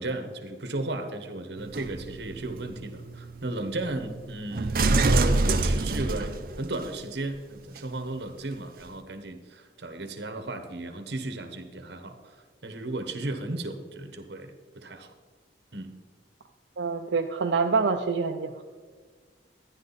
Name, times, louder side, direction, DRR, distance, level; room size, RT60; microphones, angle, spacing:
voice 1, 0.0-12.4 12.6-15.1 15.7-15.9, right 2 dB, 70° right, 8 dB, 1.2 m, -35 dB
sound 1, 1.6-6.9 7.8-7.9, right 2 dB, 50° right, 0.7 m, -27 dB
voice 2, 16.8-18.5, right 4 dB, 90° right, 3 dB, 0.6 m, -26 dB
12.0 x 10.5 x 4.1 m, 1.5 s
head